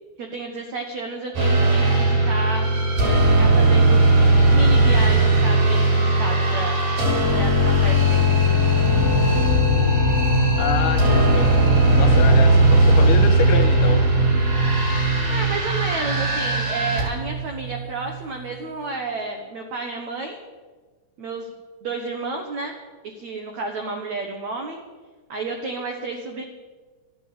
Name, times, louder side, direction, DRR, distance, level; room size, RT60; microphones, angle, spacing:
voice 1, 0.2-2.7 3.4-6.7 7.3-8.3 15.3-20.4 21.2-21.5 21.8-22.8 23.1-24.8 25.3-26.4, right 3 dB, 80° right, 3 dB, 1.6 m, -31 dB
sound 1, 1.3-17.0, right 1 dB, 55° right, 7.0 m, -18 dB
sound 2, 8.8-18.5, right 2 dB, 20° right, 0.7 m, -24 dB
voice 2, 10.6-11.6 12.0-14.0, left 7 dB, 75° left, 6 dB, 2.4 m, -27 dB
13.0 x 10.5 x 8.4 m, 1.4 s
omnidirectional pair, 5.1 m